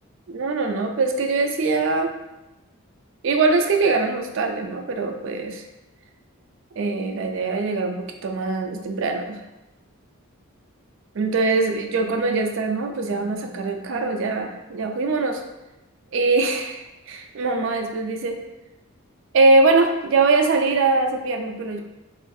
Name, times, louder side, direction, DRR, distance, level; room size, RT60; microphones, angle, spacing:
voice 1, 0.3-2.1 3.2-5.7 6.8-9.4 11.1-15.4 16.1-18.4 19.3-21.8, right 3 dB, 60° right, 4 dB, 0.4 m, -22 dB
3.8 x 2.4 x 2.6 m, 0.98 s
head